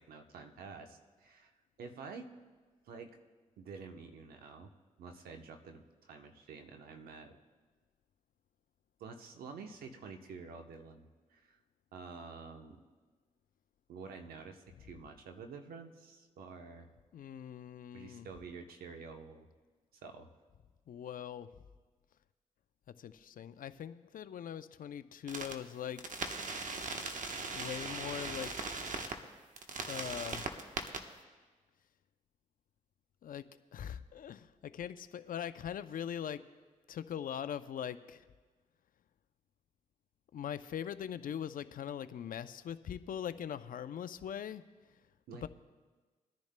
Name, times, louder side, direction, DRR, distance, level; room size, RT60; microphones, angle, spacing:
voice 1, 0.0-1.5 1.8-2.3 2.8-3.2 3.6-4.7 5.0-7.4 9.0-11.6 11.9-12.8 13.9-16.9 17.9-19.5 20.0-20.3 45.3-45.5, right 5 dB, 90° right, 5 dB, 0.9 m, -49 dB
voice 2, 17.1-18.3 20.9-21.5 23.0-26.0 27.5-28.5 29.9-30.6 33.2-33.5 33.7-36.4 36.9-38.2 40.3-44.6 45.3-45.5, left 9 dB, 70° left, 13 dB, 0.5 m, -41 dB
sound 1, 25.3-25.5 26.0-29.1 29.6-31.0, right 4 dB, 60° right, 1.1 m, -39 dB
22.5 x 10.5 x 2.2 m, 1.3 s
cardioid pair, 55°, 15 cm